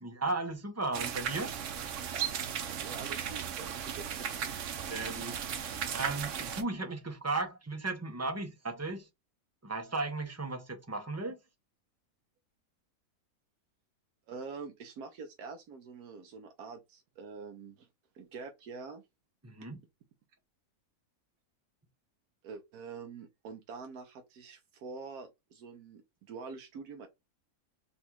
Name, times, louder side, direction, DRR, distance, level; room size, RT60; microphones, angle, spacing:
voice 1, 0.0-1.5 4.9-9.1 9.6-11.4 19.4-19.8, right 3 dB, 25° right, 0.3 m, -36 dB
sound 1, 0.9-6.6, right 8 dB, 60° right, 0.9 m, -36 dB
voice 2, 2.8-4.3 14.3-17.9 18.1-19.0 22.4-26.0 26.3-27.1, right 5 dB, 85° right, 1.2 m, -45 dB
4.1 x 2.4 x 4.2 m
omnidirectional pair, 1.6 m